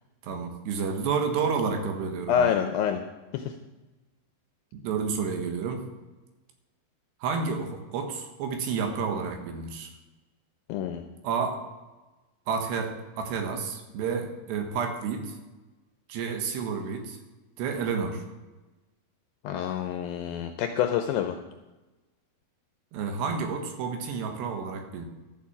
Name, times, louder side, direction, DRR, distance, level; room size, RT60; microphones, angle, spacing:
voice 1, 0.2-2.5 4.7-5.9 7.2-9.9 11.2-11.6 12.5-15.4 16.1-17.2 17.6-18.2 22.9-25.1, right 5 dB, 90° right, 4 dB, 3.7 m, -30 dB
voice 2, 2.3-3.0 3.3-3.4 10.7-11.0 19.4-21.4, left 9 dB, 80° left, 6 dB, 2.2 m, -27 dB
12.0 x 7.3 x 7.3 m, 1.1 s
omnidirectional pair, 4.7 m